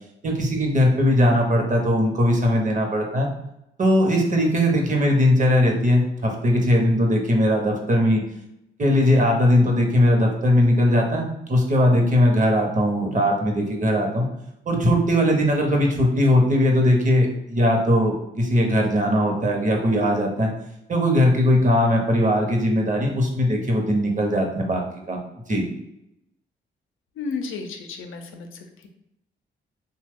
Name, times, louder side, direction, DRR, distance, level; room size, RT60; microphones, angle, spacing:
voice 1, 0.2-3.3 3.8-8.2 8.8-14.3 14.7-20.5 20.9-24.8 25.1-25.2 25.5-25.6, left 1 dB, 40° right, 1 dB, 0.8 m, -19 dB
voice 2, 27.2-28.9, left 4 dB, 85° left, 5 dB, 0.5 m, -33 dB
2.9 x 2.3 x 3.5 m, 0.83 s
cardioid pair, 80°, 20 cm